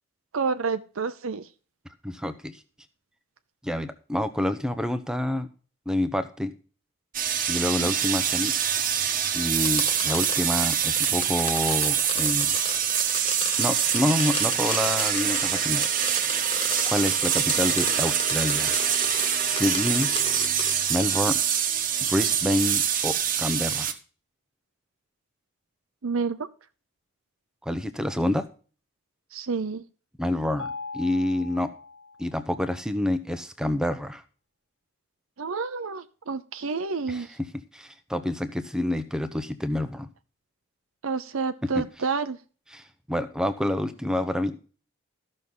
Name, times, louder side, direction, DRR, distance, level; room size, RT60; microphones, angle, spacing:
voice 1, 0.3-1.5 7.8-7.9 26.0-26.5 29.3-29.8 35.4-37.3 41.0-42.4, right 4 dB, 80° right, 9 dB, 0.7 m, -29 dB
voice 2, 2.0-2.6 3.6-5.5 5.9-6.5 7.5-8.5 9.3-12.6 13.6-15.8 16.8-18.8 19.4-20.1 20.9-21.4 22.1-24.0 27.6-28.4 30.2-31.7 32.2-34.2 37.1-37.5 37.7-40.1 41.8-41.9 42.7-44.5, left 1 dB, 5° right, 10 dB, 0.9 m, -27 dB
sound 1, 7.1-23.9, right 9 dB, 40° right, 1.2 m, -25 dB
sound 2, 9.6-20.8, left 4 dB, 25° left, 1.6 m, -35 dB
Mallet percussion, 30.6-32.6, left 4 dB, 60° left, 0.6 m, -39 dB
14.0 x 6.4 x 5.5 m, 0.38 s
head